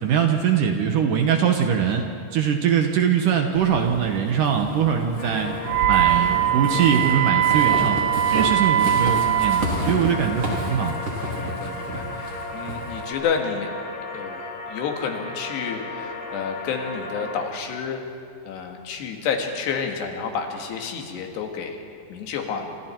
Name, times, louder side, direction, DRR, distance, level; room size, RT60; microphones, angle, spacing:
voice 1, 0.0-2.1 2.3-5.5 5.8-8.0 8.3-11.0, right 8 dB, 65° right, 4 dB, 2.2 m, -22 dB
Walk footsteps / Squeak, 3.5-13.1, right 1 dB, 35° right, 3.8 m, -31 dB
sound 1, 5.2-17.5, left 2 dB, 35° left, 2.3 m, -35 dB
Wind instrument woodwind instrument, 5.7-9.7, right 11 dB, 85° right, 3.0 m, -21 dB
voice 2, 11.4-13.7 14.1-18.0 18.4-21.8 22.1-22.7, left 6 dB, 80° left, 3 dB, 4.1 m, -30 dB
29.0 x 26.5 x 4.5 m, 2.5 s
omnidirectional pair, 4.8 m